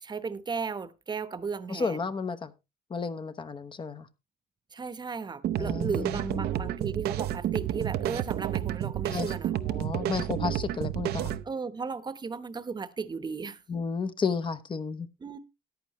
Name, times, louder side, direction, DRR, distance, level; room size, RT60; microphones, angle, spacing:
voice 1, 0.0-2.0 4.7-9.5 11.4-13.6 15.2-15.4, right 5 dB, 25° right, 1.0 m, -35 dB
voice 2, 1.7-2.5 2.9-4.1 5.6-6.7 9.1-9.3 9.7-11.4 13.7-15.1, left 5 dB, 30° left, 0.9 m, -32 dB
sound 1, 5.4-11.4, right 12 dB, 70° right, 0.7 m, -30 dB
14.0 x 10.0 x 3.1 m
cardioid pair, 110°, 17 cm